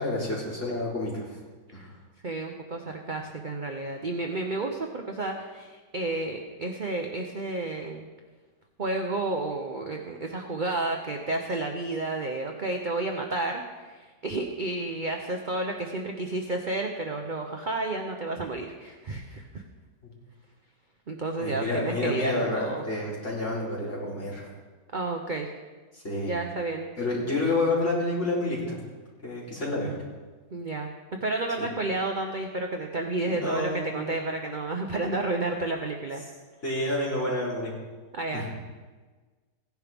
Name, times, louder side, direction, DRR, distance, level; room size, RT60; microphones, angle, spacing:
voice 1, 0.0-1.4 1.7-1.9 21.4-24.5 25.9-26.3 27.0-28.8 29.2-30.0 31.6-31.7 33.2-34.2 36.6-37.7 38.3-38.5, left 2 dB, 40° left, -7 dB, 4.1 m, -29 dB
voice 2, 2.2-8.1 8.8-19.6 21.1-22.8 24.9-25.5 26.3-26.9 30.5-30.9 31.2-36.2 38.1-38.5, right 2 dB, 40° right, 3 dB, 0.7 m, -31 dB
16.5 x 10.5 x 3.5 m, 1.3 s
omnidirectional pair, 1.9 m